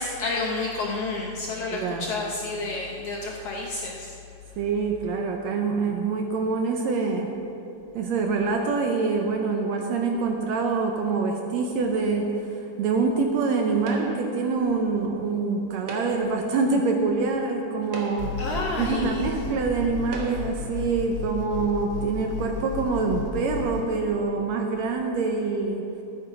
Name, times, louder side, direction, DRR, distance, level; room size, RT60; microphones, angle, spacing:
voice 1, 0.0-4.1 18.4-19.2, left 3 dB, 70° left, -1 dB, 1.5 m, -30 dB
voice 2, 1.7-2.1 4.6-7.3 8.0-18.3 18.8-25.8, right 4 dB, 70° right, 2 dB, 1.8 m, -25 dB
sound 1, 13.9-14.4 15.7-16.4 17.3-17.4 17.8-18.5 19.4-19.5 20.1-20.6, right 2 dB, 55° right, 1.8 m, -38 dB
sound 2, 18.2-23.8, left 5 dB, 40° left, 2.4 m, -33 dB
13.5 x 8.8 x 5.0 m, 2.7 s
omnidirectional pair, 3.7 m